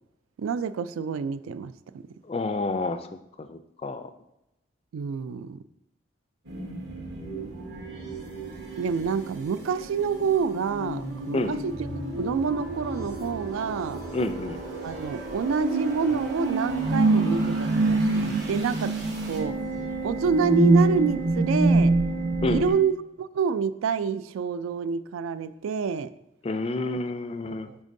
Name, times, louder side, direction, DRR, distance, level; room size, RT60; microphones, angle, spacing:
voice 1, 0.4-1.7 4.9-5.6 8.8-11.9 12.2-14.0 14.8-18.9 19.3-19.6 20.0-21.9 22.5-26.1 27.5-27.8, right 5 dB, 85° right, 14 dB, 0.3 m, -27 dB
voice 2, 2.3-3.1 3.4-4.1 11.3-11.6 14.1-14.6 22.4-22.7 26.4-27.7, left 2 dB, 30° left, 10 dB, 0.3 m, -29 dB
sound 1, 6.5-22.7, right 2 dB, 55° right, 1.2 m, -27 dB
10.5 x 3.6 x 2.6 m, 0.88 s
head